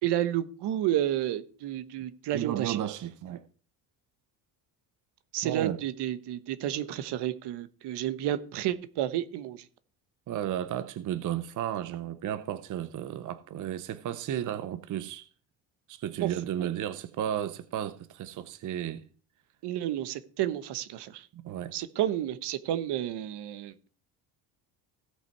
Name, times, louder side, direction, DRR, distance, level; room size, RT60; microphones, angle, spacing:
voice 1, 0.0-2.8 5.3-9.6 16.2-16.7 19.6-21.3 21.7-23.9, right 12 dB, 75° right, 1.1 m, -31 dB
voice 2, 2.3-3.4 5.4-5.8 10.3-15.3 15.9-19.0 21.3-21.7, right 11 dB, 45° right, 0.7 m, -33 dB
16.5 x 5.8 x 4.6 m
cardioid pair, 140°, 41 cm